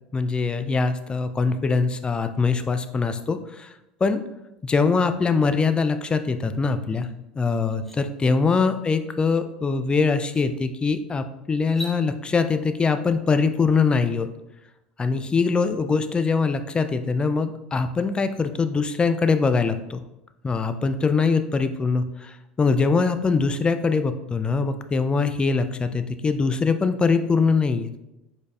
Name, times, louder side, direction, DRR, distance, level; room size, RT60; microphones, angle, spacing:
voice 1, 0.1-3.7 4.0-4.2 4.6-7.1 7.3-14.3 15.0-20.0 20.4-27.9, left 4 dB, 20° left, 9 dB, 0.4 m, -23 dB
sound 1, 7.0-7.1 7.5-8.0 9.6-9.7 10.2-10.5 11.6-12.0, right 1 dB, 5° left, 0.9 m, -39 dB
5.1 x 4.1 x 2.4 m, 0.91 s
hypercardioid pair, 75°, 5 cm